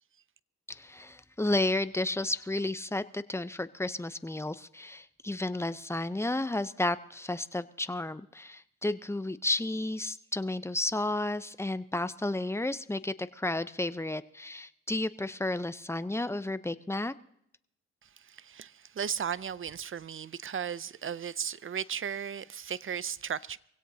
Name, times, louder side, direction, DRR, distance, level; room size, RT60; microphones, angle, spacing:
voice 1, 0.7-17.1, left 2 dB, 10° left, 0.8 m, -32 dB
voice 2, 18.0-23.6, right 8 dB, 45° right, 0.6 m, -36 dB
23.5 x 16.5 x 2.8 m
supercardioid pair, 50°, 29 cm